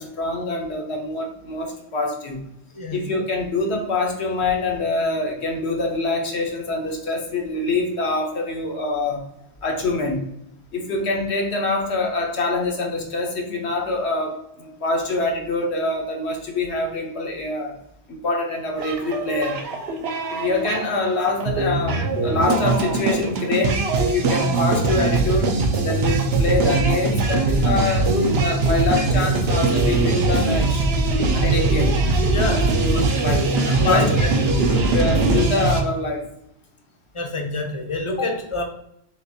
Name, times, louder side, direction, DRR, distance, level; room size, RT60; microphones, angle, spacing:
voice 1, 0.0-2.4 2.9-9.2 9.6-10.3 10.7-17.8 18.1-19.6 20.3-25.5 25.8-28.1 28.3-30.9 31.3-32.0 32.8-36.3, left 3 dB, 75° left, 2 dB, 1.2 m, -25 dB
sound 1, 18.8-35.8, right 3 dB, 70° right, 0.9 m, -21 dB
voice 2, 32.3-32.8 33.8-34.3 37.1-38.6, left 2 dB, 35° left, 3 dB, 0.6 m, -26 dB
6.3 x 2.5 x 2.7 m, 0.77 s
omnidirectional pair, 1.1 m